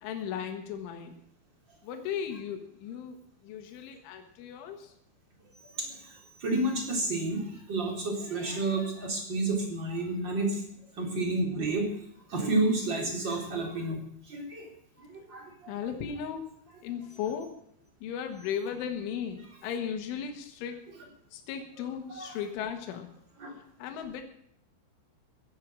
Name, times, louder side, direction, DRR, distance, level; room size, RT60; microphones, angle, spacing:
voice 1, 0.0-1.2 1.8-3.2 3.4-4.9 15.7-16.4 16.8-17.5 18.0-20.8 21.3-23.1 23.6-24.2, left 8 dB, 85° left, 5 dB, 3.9 m, -36 dB
voice 2, 5.7-10.6 11.0-11.9 12.3-14.0 14.3-14.7 15.0-15.7 21.8-21.9 22.1-22.4 23.4-23.5, right 2 dB, 25° right, 1 dB, 3.8 m, -30 dB
16.5 x 11.5 x 6.1 m, 0.70 s
omnidirectional pair, 5.4 m